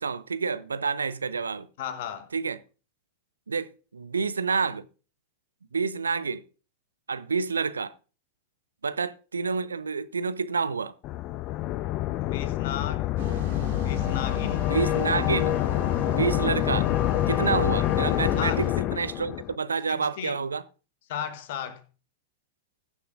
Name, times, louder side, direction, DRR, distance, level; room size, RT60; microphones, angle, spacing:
voice 1, 0.0-1.7 2.3-2.6 3.5-4.9 5.7-6.4 7.1-7.9 8.8-10.9 14.7-15.5 16.1-16.9 17.3-18.7 18.9-20.6, right 5 dB, 75° right, 0.5 m, -28 dB
voice 2, 1.8-2.3 12.2-13.1 13.8-14.7 18.4-18.6 19.9-20.4 21.1-21.8, left 9 dB, 55° left, 1.1 m, -35 dB
sound 1, 11.0-19.6, left 15 dB, 40° left, 0.4 m, -26 dB
sound 2, 13.2-18.7, right 6 dB, 60° right, 2.2 m, -38 dB
20.0 x 6.8 x 2.5 m
figure-of-eight pair, 90°, 0 cm